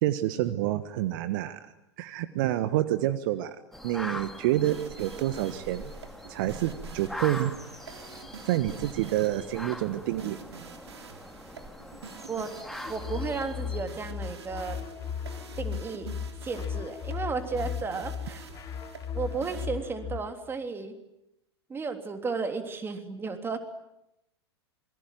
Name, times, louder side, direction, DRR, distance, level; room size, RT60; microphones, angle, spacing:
voice 1, 0.0-1.7 2.0-3.6 3.8-5.9 6.3-7.5 8.5-10.4, right 14 dB, 50° right, 12 dB, 1.5 m, -28 dB
sound 1, 3.7-13.8, left 1 dB, ahead, 2.8 m, -42 dB
sound 2, 4.6-19.7, right 5 dB, 75° right, 3.5 m, -47 dB
sound 3, 12.8-20.2, left 7 dB, 25° left, 3.6 m, -36 dB
voice 2, 12.9-14.8 15.6-16.1 16.4-18.5 19.1-21.0 21.7-23.6, right 4 dB, 15° right, 7 dB, 3.3 m, -33 dB
27.0 x 24.0 x 9.3 m, 0.83 s
figure-of-eight pair, 95°, 14 cm